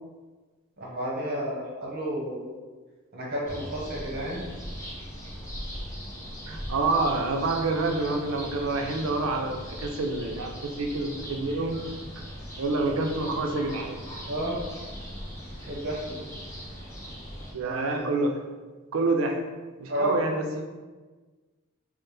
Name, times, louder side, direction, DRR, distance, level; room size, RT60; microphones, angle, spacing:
voice 1, 0.8-2.5 3.1-4.4 14.2-14.6 15.7-16.2 17.6-18.1 19.9-20.2, equal, 45° right, -3 dB, 0.9 m, -31 dB
sound 1, 3.4-17.5, equal, 15° left, 0.9 m, -40 dB
voice 2, 6.5-11.8 12.6-14.0 17.5-18.4 18.9-19.4 19.8-20.6, right 3 dB, 75° right, 3 dB, 0.5 m, -27 dB
4.5 x 2.0 x 3.3 m, 1.3 s
head